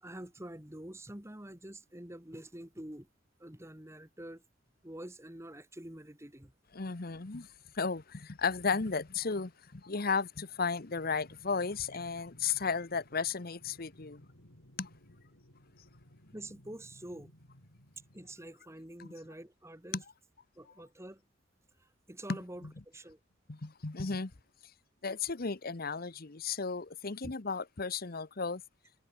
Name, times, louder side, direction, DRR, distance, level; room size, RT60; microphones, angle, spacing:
voice 1, 0.0-3.1 3.4-4.4 4.8-6.5 16.3-17.3 18.1-20.0 20.6-21.2 21.8-23.2 27.2-27.3, right 1 dB, 15° right, 2.2 m, -47 dB
voice 2, 6.7-7.5 7.7-14.3 14.8-14.9 19.0-19.1 19.9-20.0 22.3-22.7 23.5-24.3 25.0-28.6, left 5 dB, 50° left, 1.0 m, -34 dB
sound 1, 10.4-18.4, equal, 80° left, 5.9 m, -59 dB
head